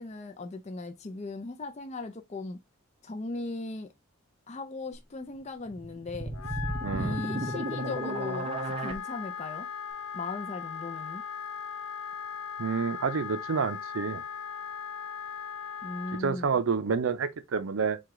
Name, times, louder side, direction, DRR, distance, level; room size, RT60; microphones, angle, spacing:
voice 1, 0.0-2.6 3.0-3.9 4.5-6.6 6.9-9.7 10.1-11.2 15.8-16.6, left 3 dB, 30° left, 0.4 m, -38 dB
sound 1, 5.7-8.9, right 1 dB, 25° right, 0.6 m, -33 dB
Wind instrument woodwind instrument, 6.3-16.2, left 7 dB, 90° left, 0.4 m, -38 dB
voice 2, 6.8-7.2 12.6-14.2 16.2-18.0, right 5 dB, 75° right, 0.5 m, -29 dB
4.8 x 2.3 x 3.6 m
head